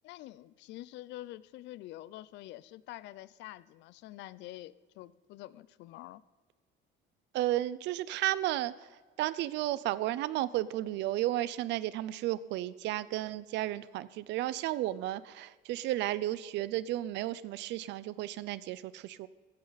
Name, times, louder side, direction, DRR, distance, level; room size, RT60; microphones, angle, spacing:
voice 1, 0.0-6.2, left 15 dB, 65° left, 19 dB, 0.5 m, -47 dB
voice 2, 7.3-8.7 9.2-19.3, right 14 dB, 65° right, 17 dB, 0.6 m, -33 dB
15.5 x 14.5 x 4.1 m, 1.4 s
cardioid pair, 180°, 20 cm